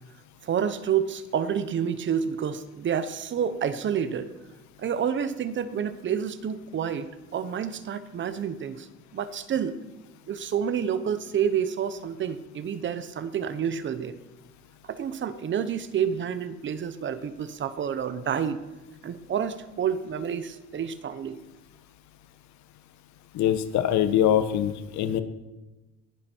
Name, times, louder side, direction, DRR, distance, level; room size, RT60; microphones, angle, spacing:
voice 1, 0.4-4.3 4.8-8.9 9.1-9.8 10.3-14.1 14.8-18.6 19.0-21.4, right 8 dB, 40° right, 12 dB, 1.0 m, -29 dB
voice 2, 23.3-25.2, left 10 dB, 70° left, 11 dB, 1.3 m, -23 dB
19.5 x 11.5 x 4.6 m, 1.1 s
cardioid pair, 130°, 30 cm